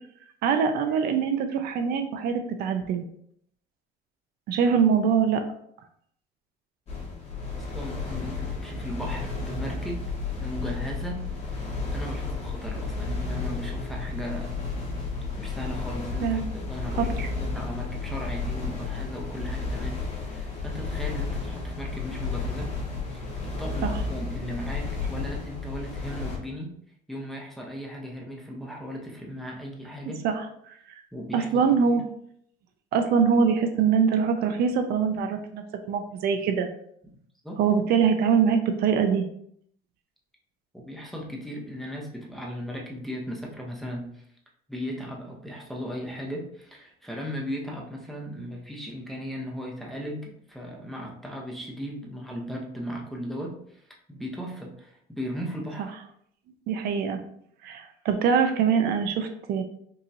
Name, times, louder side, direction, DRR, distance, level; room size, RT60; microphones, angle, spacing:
voice 1, 0.4-3.0 4.5-5.4 16.2-16.5 17.0-17.3 23.8-23.9 30.2-30.8 31.3-32.0 32.9-36.7 37.6-39.2 56.7-57.2 57.6-59.6, right 6 dB, 65° right, 6 dB, 0.6 m, -23 dB
sound 1, 6.9-26.4, left 3 dB, 40° left, 1.6 m, -32 dB
voice 2, 7.6-10.0 10.4-14.5 15.4-17.1 17.4-22.7 23.0-26.7 27.1-30.2 31.1-32.0 37.4-37.6 40.7-44.2 44.7-55.9, equal, ahead, -2 dB, 0.7 m, -37 dB
5.3 x 3.0 x 2.6 m, 0.67 s
cardioid pair, 160°, 18 cm